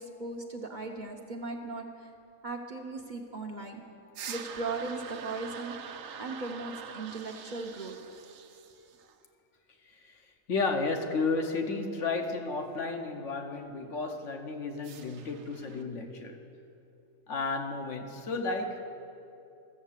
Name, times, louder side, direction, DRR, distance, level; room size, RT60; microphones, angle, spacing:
voice 1, 0.0-2.1 2.4-3.8 4.3-7.9, right 3 dB, 40° right, 2 dB, 0.9 m, -38 dB
sound 1, 4.1-9.2 14.8-15.8, right 7 dB, 80° right, 1.1 m, -45 dB
voice 2, 10.5-16.4 17.3-18.8, left 3 dB, 70° left, 4 dB, 1.2 m, -32 dB
13.5 x 7.1 x 7.4 m, 2.6 s
omnidirectional pair, 1.4 m